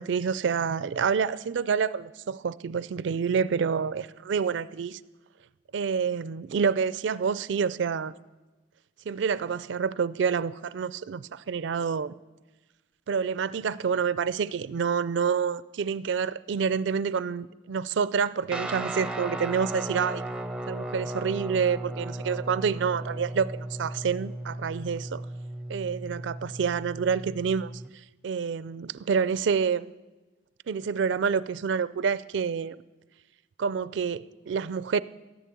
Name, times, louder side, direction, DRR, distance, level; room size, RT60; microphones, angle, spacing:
voice 1, 0.0-5.0 5.7-8.1 9.1-12.1 13.1-20.2 20.7-25.2 25.7-27.7 28.2-29.9 30.7-32.8 33.6-35.0, right 6 dB, 70° right, 17 dB, 0.4 m, -28 dB
Guitar, 18.5-27.9, right 1 dB, 5° right, 0.5 m, -36 dB
14.0 x 11.0 x 8.4 m, 1.2 s
head